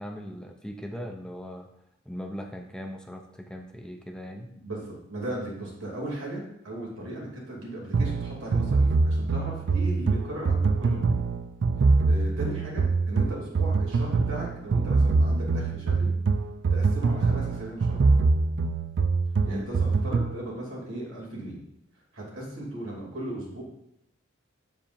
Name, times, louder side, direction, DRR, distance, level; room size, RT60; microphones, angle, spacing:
voice 1, 0.0-1.7 2.1-4.5 19.5-19.7, equal, 5° left, 3 dB, 0.4 m, -39 dB
voice 2, 4.6-11.2 12.1-16.1 16.7-18.2 19.4-21.6 22.1-23.6, right 1 dB, 85° right, -4 dB, 2.6 m, -37 dB
sound 1, 7.9-20.4, right 3 dB, 60° right, 0.4 m, -24 dB
7.3 x 7.0 x 2.5 m, 0.78 s
head